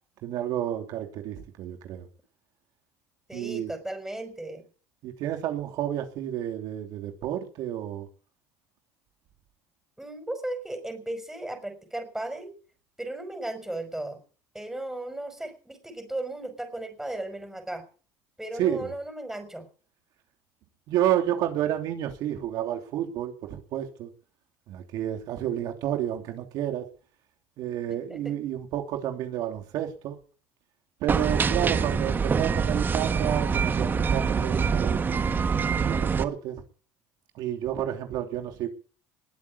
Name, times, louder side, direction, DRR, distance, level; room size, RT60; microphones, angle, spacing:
voice 1, 0.2-2.1 3.3-3.7 5.0-8.1 18.6-18.8 20.9-24.1 24.7-26.9 27.6-30.2 31.0-35.3 35.8-36.6 37.3-38.7, right 11 dB, 65° right, 5 dB, 3.0 m, -30 dB
voice 2, 3.3-4.7 10.0-12.5 13.0-14.2 14.5-17.8 18.4-19.7 28.1-28.4, right 1 dB, 5° right, 8 dB, 5.4 m, -35 dB
sound 1, 31.1-36.2, right 6 dB, 30° right, 1.4 m, -25 dB
21.0 x 7.6 x 8.5 m, 0.40 s
supercardioid pair, 105°, 7 cm